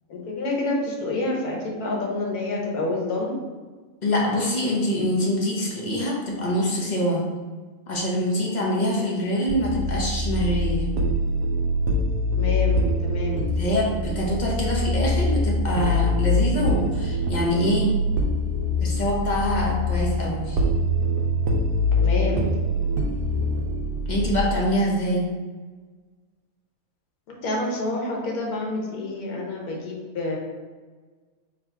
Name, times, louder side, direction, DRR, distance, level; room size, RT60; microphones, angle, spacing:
voice 1, 0.1-3.3 12.4-13.5 22.0-22.5 27.3-30.4, left 2 dB, 85° left, -1 dB, 1.5 m, -28 dB
voice 2, 4.0-7.2 7.9-10.9 13.6-17.9 18.8-20.6 24.1-25.2, equal, 35° left, -3 dB, 0.9 m, -24 dB
sound 1, 9.5-24.4, left 1 dB, 70° right, 1.0 m, -24 dB
3.9 x 2.9 x 4.4 m, 1.4 s
omnidirectional pair, 1.5 m